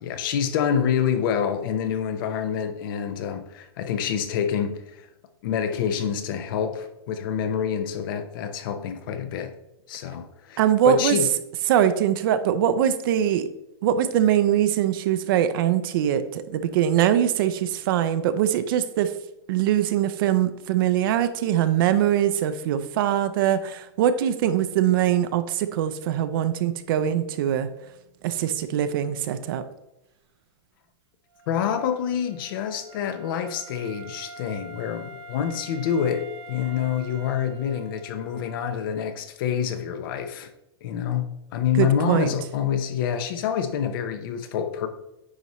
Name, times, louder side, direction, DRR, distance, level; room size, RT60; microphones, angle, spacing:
voice 1, 0.0-5.1 5.4-9.5 9.9-10.6 10.9-11.3 31.5-40.5 40.8-44.9, left 8 dB, 55° left, 0.8 m, -27 dB
voice 2, 10.6-11.2 11.7-13.5 13.8-19.1 19.5-27.7 28.2-29.6 41.8-42.3, right 10 dB, 55° right, 0.5 m, -22 dB
Wind instrument woodwind instrument, 31.3-39.1, right 1 dB, 85° right, 1.2 m, -45 dB
9.7 x 4.1 x 3.1 m
supercardioid pair, 150°, 14 cm